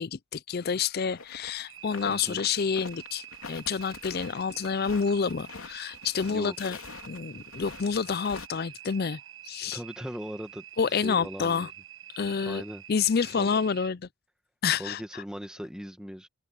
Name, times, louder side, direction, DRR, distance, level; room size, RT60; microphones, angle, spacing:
voice 1, 0.0-6.8 7.1-9.2 9.4-9.8 10.8-11.7 12.2-12.6 12.9-14.1 14.6-15.2, left 6 dB, 45° left, 0.4 m, -28 dB
sound 1, 1.1-1.5 1.8-8.5, left 4 dB, 70° left, 3.2 m, -45 dB
sound 2, 1.7-13.9, right 11 dB, 60° right, 7.6 m, -47 dB
voice 2, 2.1-2.4 6.3-6.6 9.7-11.7 12.4-12.8 13.4-13.5 14.8-16.3, equal, 5° right, 1.8 m, -39 dB
open air
head